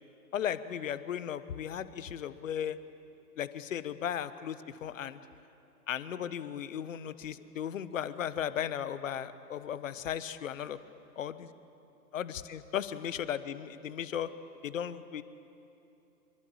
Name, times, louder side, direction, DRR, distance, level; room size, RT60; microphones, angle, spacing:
voice 1, 0.3-2.8 3.4-5.2 5.9-10.8 11.2-11.5 12.1-14.3 14.6-15.2, left 9 dB, 50° left, 15 dB, 1.2 m, -36 dB
25.5 x 23.5 x 8.7 m, 2.9 s
figure-of-eight pair, 130°, 50 cm